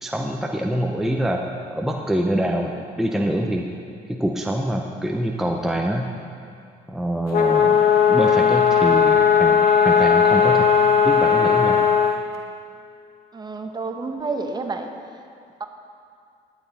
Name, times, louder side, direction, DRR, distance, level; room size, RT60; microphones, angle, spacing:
voice 1, 0.0-1.4 1.7-3.7 4.1-6.1 6.9-10.7 11.0-11.8, right 1 dB, ahead, 1 dB, 0.6 m, -25 dB
sound 1, 7.3-12.2, left 7 dB, 65° left, 1.0 m, -17 dB
voice 2, 13.3-14.9 15.6-15.7, right 3 dB, 25° right, 5 dB, 0.8 m, -29 dB
11.5 x 9.0 x 4.1 m, 2.3 s
cardioid pair, 110°, 17 cm